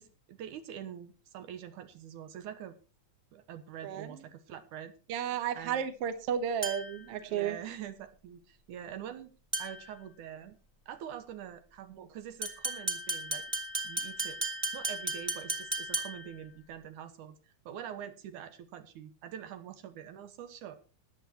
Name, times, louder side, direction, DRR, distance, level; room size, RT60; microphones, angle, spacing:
voice 1, 0.0-2.8 3.3-4.9 5.5-5.8 7.3-9.3 9.6-10.6 10.9-13.4 13.8-14.4 14.7-20.8, right 9 dB, 85° right, 10 dB, 2.7 m, -45 dB
voice 2, 3.8-4.2 5.1-7.6, right 8 dB, 55° right, 10 dB, 2.0 m, -33 dB
sound 1, 6.6-7.1 9.5-9.9 12.4-16.4, right 1 dB, 15° right, 1.4 m, -35 dB
14.5 x 9.5 x 4.3 m, 0.32 s
omnidirectional pair, 3.5 m